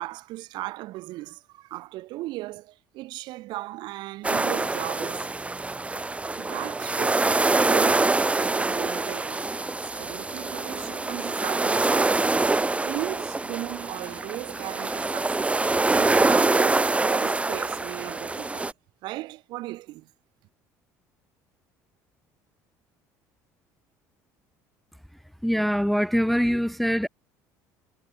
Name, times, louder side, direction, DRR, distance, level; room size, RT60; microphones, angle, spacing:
voice 1, 0.0-5.3 6.4-7.3 7.6-9.5 9.8-12.2 12.7-18.7 19.0-20.1, right 18 dB, 70° right, 3.4 m, -37 dB
sound 1, 4.2-18.7, right 3 dB, 15° right, 1.2 m, -25 dB
voice 2, 25.4-27.1, equal, ahead, 0.5 m, -23 dB
supercardioid pair, 75°, 8 cm